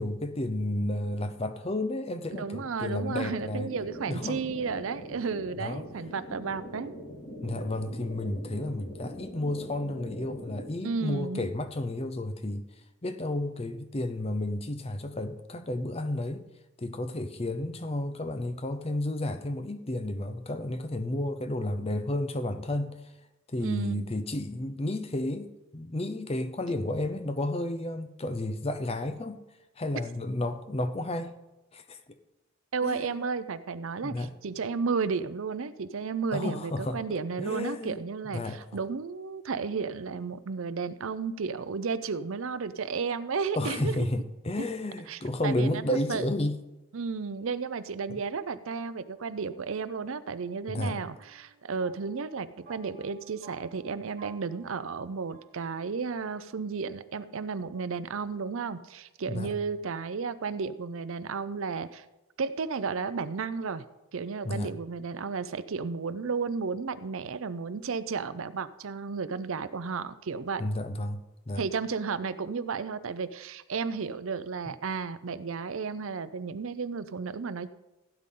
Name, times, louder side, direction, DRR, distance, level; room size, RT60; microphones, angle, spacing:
voice 1, 0.0-3.7 4.1-4.4 5.6-5.9 7.4-12.7 13.0-16.5 16.8-23.1 23.5-29.4 29.8-31.4 31.7-32.2 32.8-33.2 34.0-34.3 36.3-38.0 38.3-38.6 43.6-46.6 48.1-48.2 50.7-51.0 59.3-59.5 64.4-64.7 70.6-71.6, left 1 dB, 25° left, 0.6 m, -32 dB
voice 2, 2.4-6.9 10.8-11.5 23.6-24.1 32.7-43.9 45.1-45.8 46.1-46.3 46.9-62.0 62.4-63.9 64.1-70.6 71.6-77.7, right 5 dB, 65° right, 0.5 m, -33 dB
sound 1, 3.2-10.7, equal, 85° left, 4.9 m, -43 dB
sound 2, 49.3-56.3, right 6 dB, 45° right, 1.6 m, -56 dB
16.0 x 9.1 x 3.8 m
head